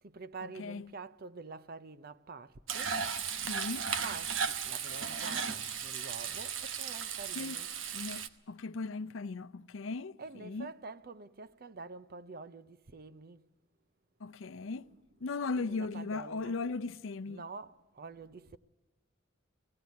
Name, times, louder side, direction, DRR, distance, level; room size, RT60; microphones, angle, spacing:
voice 1, 0.0-3.0 4.0-7.7 10.2-13.5 14.7-14.9 15.5-16.6 17.3-18.6, right 4 dB, 50° right, 0.7 m, -47 dB
Frying (food), 2.7-8.3, right 6 dB, 85° right, 1.1 m, -36 dB
voice 2, 3.4-3.9 7.4-7.6 7.9-10.7 14.2-14.9 15.2-17.4, left 4 dB, 85° left, 0.6 m, -37 dB
18.5 x 16.0 x 9.4 m
head